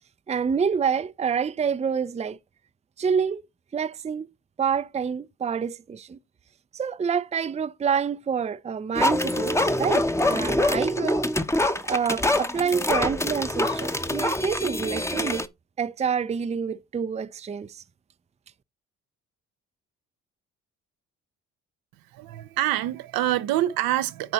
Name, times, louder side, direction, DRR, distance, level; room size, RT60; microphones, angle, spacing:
voice 1, 0.3-2.4 3.0-3.4 3.7-4.3 4.6-6.2 6.7-11.2 11.9-15.4 15.8-17.8, right 6 dB, 20° right, 0.5 m, -27 dB
sound 1, 8.9-15.5, left 1 dB, 10° left, 0.9 m, -25 dB
voice 2, 22.1-24.3, right 13 dB, 70° right, 0.7 m, -26 dB
10.5 x 4.4 x 4.1 m
hypercardioid pair, 45°, 36 cm